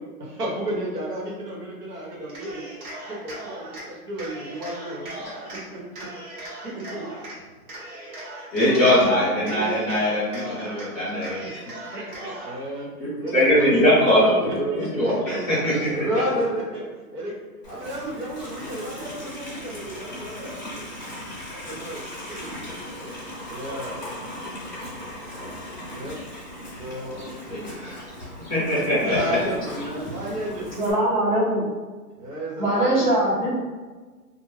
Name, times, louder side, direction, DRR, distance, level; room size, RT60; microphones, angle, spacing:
voice 1, 0.2-2.6 3.1-5.1 5.7-7.4 9.4-9.7 11.9-15.4 15.9-17.4 17.7-20.9 21.5-22.7 23.5-24.0 25.9-26.1 26.8-27.3 28.8-30.6 32.2-33.0, right 1 dB, 85° right, -3 dB, 1.2 m, -32 dB
Cheering, 2.2-3.8 4.2-5.6 5.9-7.4 7.7-9.1 9.4-10.9 11.2-12.6, right 1 dB, 70° right, 1.3 m, -38 dB
voice 2, 8.5-11.4 13.0-15.8 27.5-28.0 28.5-29.4, left 1 dB, 10° right, -18 dB, 1.0 m, -21 dB
Livestock farm animals working animals, 17.6-30.9, left 1 dB, 30° left, 0.5 m, -38 dB
voice 3, 30.8-31.7 32.6-33.6, right 1 dB, 30° right, -7 dB, 0.7 m, -21 dB
2.5 x 2.1 x 3.2 m, 1.4 s
hypercardioid pair, 180°, 45 cm